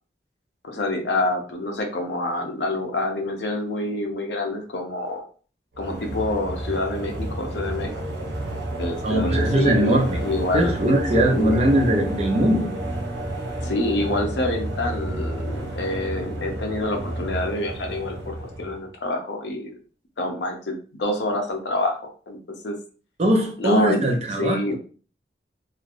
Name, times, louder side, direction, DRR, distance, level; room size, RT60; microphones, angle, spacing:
voice 1, 0.6-5.2 5.8-7.9 8.8-9.9 10.2-10.7 11.1-11.6 13.6-19.8 20.2-22.0 22.3-22.4 22.6-22.8 23.6-24.1 24.4-24.8, left 2 dB, 75° left, 0.6 m, -27 dB
sound 1, 5.7-18.8, right 1 dB, 85° right, 0.8 m, -30 dB
voice 2, 9.0-10.2 10.5-12.8 23.2-24.6, right 1 dB, 35° right, 0.6 m, -20 dB
3.1 x 2.4 x 2.5 m
head